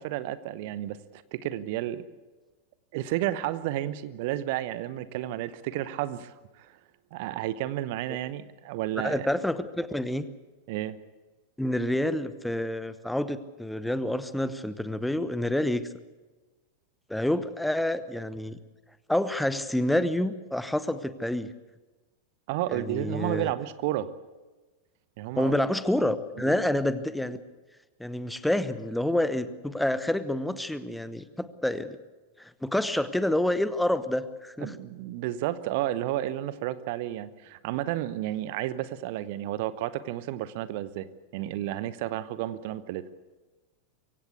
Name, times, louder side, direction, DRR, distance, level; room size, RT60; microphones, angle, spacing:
voice 1, 0.0-2.0 2.9-6.8 7.1-9.3 10.7-11.0 22.5-24.1 25.2-25.5 26.4-26.6 34.6-41.1 41.3-43.1, right 13 dB, 50° right, 16 dB, 0.9 m, -32 dB
voice 2, 9.0-10.3 11.6-15.8 17.1-18.6 19.1-21.5 22.7-23.5 25.4-27.4 28.0-32.0 32.4-34.7, left 1 dB, 5° left, 14 dB, 1.0 m, -28 dB
23.5 x 16.5 x 8.3 m, 1.2 s
figure-of-eight pair, 90°, 0 cm